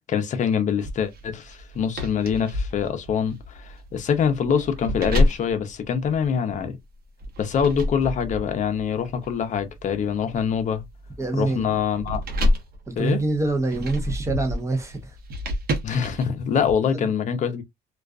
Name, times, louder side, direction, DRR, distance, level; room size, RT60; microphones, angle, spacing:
voice 1, 0.1-6.8 7.4-10.8 11.4-12.2 13.0-13.2 15.8-17.6, left 7 dB, 45° left, 0.6 m, -24 dB
sound 1, 0.8-6.6 7.2-16.7, left 1 dB, 65° right, 0.8 m, -29 dB
voice 2, 11.2-11.8 12.9-15.1, right 2 dB, 15° right, 0.6 m, -25 dB
2.4 x 2.3 x 2.3 m
cardioid pair, 110°, 17 cm